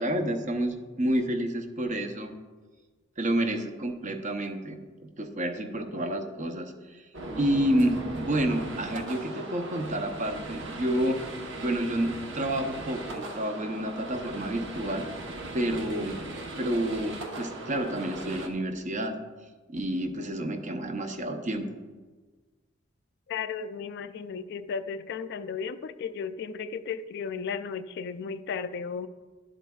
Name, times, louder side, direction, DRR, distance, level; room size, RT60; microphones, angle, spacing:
voice 1, 0.0-2.4 3.2-4.8 5.2-7.1 7.4-11.2 11.6-15.1 15.5-16.2 16.6-19.2 19.7-21.8, right 1 dB, 40° right, 6 dB, 0.7 m, -29 dB
sound 1, 7.1-18.5, right 2 dB, 65° right, 0.9 m, -38 dB
voice 2, 23.3-29.1, left 6 dB, 55° left, 12 dB, 0.3 m, -34 dB
11.5 x 7.8 x 2.3 m, 1.3 s
head